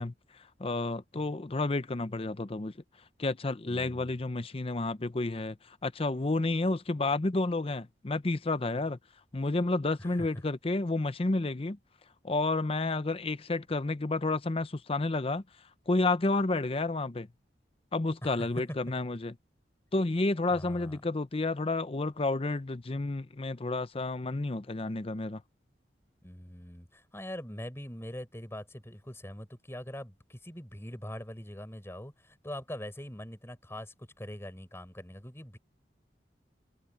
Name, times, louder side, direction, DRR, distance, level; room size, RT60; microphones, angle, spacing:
voice 1, 0.0-2.7 3.2-9.0 9.3-11.8 12.2-15.4 15.9-17.3 17.9-19.3 19.9-25.4, left 2 dB, 35° left, 0.7 m, -30 dB
voice 2, 3.7-4.1 10.0-10.3 18.2-18.5 20.5-21.0 26.2-35.6, equal, 15° left, 6.5 m, -43 dB
head